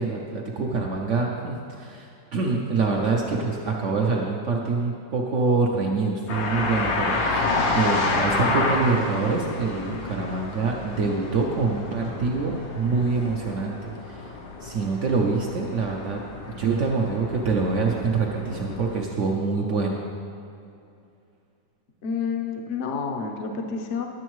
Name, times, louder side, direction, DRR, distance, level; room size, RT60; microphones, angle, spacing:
voice 1, 0.0-14.3 14.6-16.2 16.5-20.0, right 4 dB, 70° right, 0 dB, 0.7 m, -25 dB
sound 1, 6.3-19.0, left 3 dB, 90° left, 1.5 m, -29 dB
voice 2, 22.0-24.1, left 5 dB, 60° left, 3 dB, 0.7 m, -29 dB
11.0 x 7.2 x 3.1 m, 2.6 s
omnidirectional pair, 2.0 m